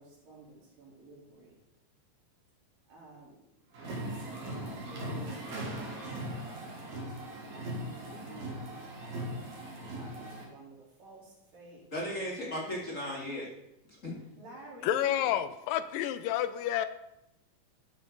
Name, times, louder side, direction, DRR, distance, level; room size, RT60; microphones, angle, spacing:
voice 1, 0.0-1.5 2.9-3.4 3.8-6.6 7.2-8.9 9.9-11.8 14.1-15.3, right 3 dB, 75° right, -5 dB, 5.3 m, -52 dB
sound 1, 3.7-10.4, right 1 dB, 60° right, 3.5 m, -39 dB
voice 2, 11.9-13.5 14.0-14.1, equal, 25° left, -3 dB, 2.0 m, -35 dB
voice 3, 14.8-16.9, left 11 dB, 80° left, 12 dB, 2.2 m, -29 dB
13.5 x 8.3 x 3.9 m, 0.86 s
omnidirectional pair, 4.0 m